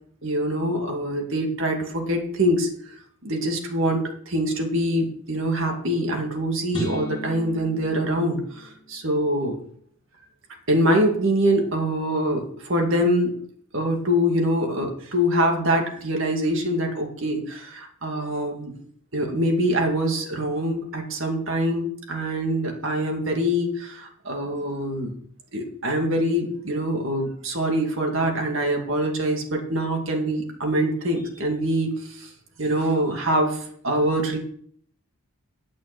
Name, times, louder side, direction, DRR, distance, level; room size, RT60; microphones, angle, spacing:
voice 1, 0.2-2.7 3.2-9.6 10.7-13.4 13.7-18.7 19.1-25.1 25.5-32.3 32.6-34.4, equal, 65° right, 2 dB, 2.3 m, -24 dB
sound 1, 6.7-9.1, equal, 20° left, 1.9 m, -36 dB
11.5 x 6.3 x 6.1 m, 0.62 s
head